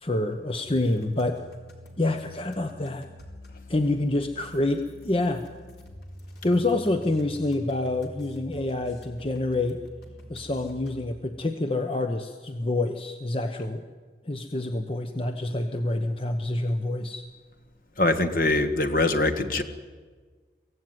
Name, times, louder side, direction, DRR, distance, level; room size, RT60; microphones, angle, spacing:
voice 1, 0.0-1.4 2.0-3.1 3.7-5.5 6.4-9.8 10.3-13.8 14.3-17.2, left 2 dB, 30° left, 6 dB, 0.9 m, -27 dB
sound 1, 0.5-11.2, equal, 70° left, 3.9 m, -46 dB
voice 2, 18.0-19.6, left 2 dB, 50° left, 7 dB, 1.6 m, -23 dB
24.0 x 16.5 x 9.3 m, 1.5 s
head